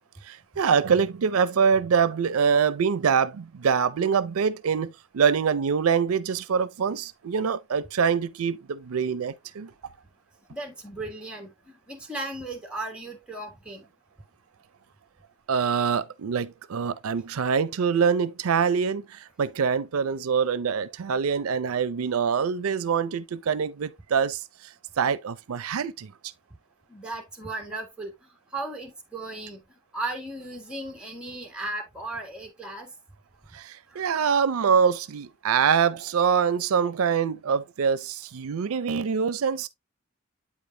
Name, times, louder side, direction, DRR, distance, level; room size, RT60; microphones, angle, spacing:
voice 1, 0.2-9.7 15.5-24.4 25.0-26.1 33.5-39.7, right 6 dB, 85° right, 0.5 m, -24 dB
voice 2, 10.5-13.9 26.9-28.1 28.5-29.6 29.9-32.9 33.9-34.0, right 2 dB, 5° right, 1.7 m, -36 dB
8.3 x 5.1 x 2.7 m
head